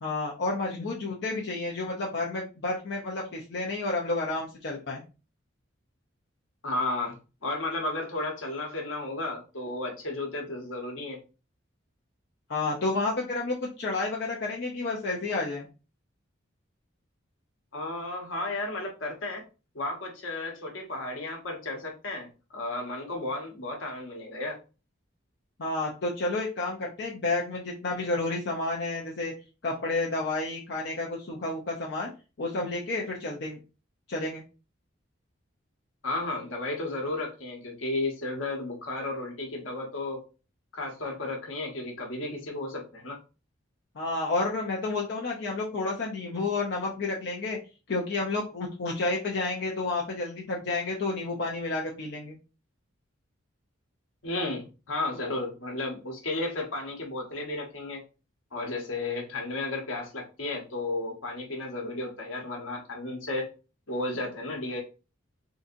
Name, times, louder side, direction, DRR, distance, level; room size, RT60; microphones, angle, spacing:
voice 1, 0.0-5.0 12.5-15.7 25.6-29.3 29.6-32.1 32.4-33.6 34.1-34.4 44.0-47.6 47.9-52.4, left 2 dB, 55° left, -2 dB, 0.6 m, -30 dB
voice 2, 6.6-7.1 7.4-11.2 17.7-19.4 19.7-22.3 22.5-24.6 36.0-40.2 40.7-43.2 54.2-58.0 58.5-63.5 63.9-64.8, left 2 dB, 80° left, 1 dB, 1.1 m, -33 dB
3.7 x 2.7 x 2.5 m, 0.32 s
head